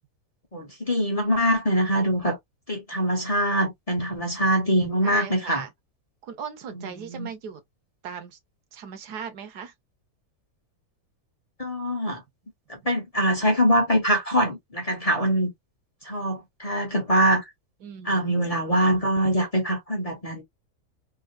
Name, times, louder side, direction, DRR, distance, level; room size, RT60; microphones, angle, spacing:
voice 1, 0.5-2.4 2.7-5.6 6.7-7.3 11.6-12.2 12.7-15.5 16.0-17.4 18.0-20.4, equal, 30° left, 0.7 m, -23 dB
voice 2, 5.0-5.7 6.2-7.6 8.0-8.4 8.7-9.7 17.8-18.3, right 7 dB, 90° right, 1.5 m, -38 dB
3.6 x 2.4 x 2.3 m
omnidirectional pair, 1.7 m